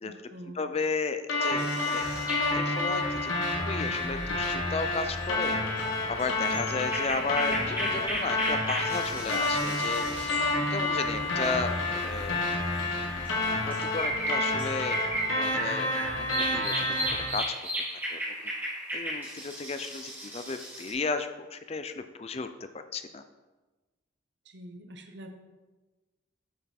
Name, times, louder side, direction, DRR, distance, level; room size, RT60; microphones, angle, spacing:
voice 1, 0.0-0.6 24.5-25.4, right 1 dB, 60° right, 5 dB, 0.9 m, -45 dB
voice 2, 0.5-1.7 1.9-2.1 2.5-3.3 3.7-5.6 6.1-12.4 13.7-15.1 15.3-15.9 16.2-16.9 17.3-17.5 18.1-18.5 18.9-22.5 22.9-23.2, left 4 dB, 30° left, 9 dB, 0.4 m, -34 dB
sound 1, 1.3-17.3, left 2 dB, 85° left, 1.5 m, -29 dB
sound 2, 1.6-11.3 11.7-11.8 12.1-20.9, right 1 dB, 10° right, 1.9 m, -36 dB
Subway metro underground, 5.8-13.7, equal, 10° left, 2.4 m, -49 dB
8.7 x 5.7 x 4.2 m, 1.2 s
head